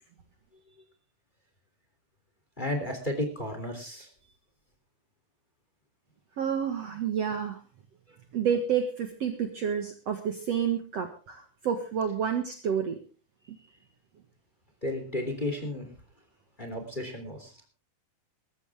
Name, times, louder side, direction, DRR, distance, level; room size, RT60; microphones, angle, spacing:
voice 1, 2.6-4.1 8.1-8.2 14.8-15.9 16.6-17.5, left 1 dB, 15° left, 5 dB, 3.0 m, -33 dB
voice 2, 6.4-7.6 8.3-13.0, right 7 dB, 55° right, 6 dB, 2.2 m, -29 dB
21.0 x 14.0 x 3.5 m, 0.35 s
omnidirectional pair, 4.1 m